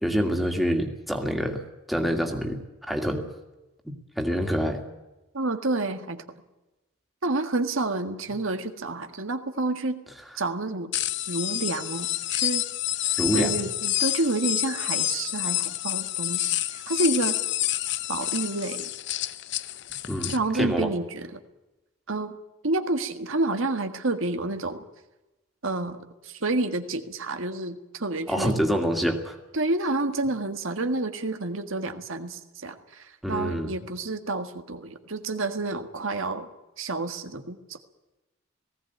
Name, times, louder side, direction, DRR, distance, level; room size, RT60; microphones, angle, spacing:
voice 1, 0.0-1.6 1.9-2.6 2.9-3.2 3.9-4.8 13.2-13.5 20.1-20.9 28.3-29.4 33.2-33.7, equal, ahead, 3 dB, 2.3 m, -26 dB
voice 2, 5.3-6.4 7.2-10.0 10.4-10.9 11.3-12.6 13.3-17.4 18.1-18.9 20.3-21.4 22.1-22.3 22.6-24.8 25.6-28.6 29.5-36.5 36.8-37.8, right 2 dB, 75° right, 7 dB, 1.7 m, -29 dB
sound 1, 10.9-20.4, left 14 dB, 55° left, 0.7 m, -28 dB
19.0 x 17.0 x 9.3 m, 1.0 s
head